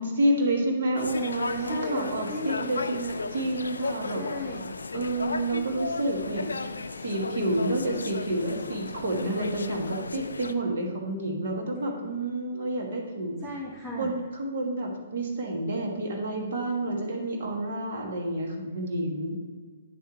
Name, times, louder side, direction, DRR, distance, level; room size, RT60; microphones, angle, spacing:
voice 1, 0.0-4.2 4.9-6.5 7.0-13.4 13.9-19.4, right 1 dB, 55° right, 0 dB, 1.6 m, -29 dB
sound 1, 1.0-10.5, left 3 dB, 80° left, 0.4 m, -35 dB
voice 2, 1.7-2.7 4.1-4.7 13.4-14.1, left 1 dB, 15° right, -4 dB, 1.2 m, -36 dB
9.2 x 3.8 x 4.3 m, 1.5 s
figure-of-eight pair, 125°, 0 cm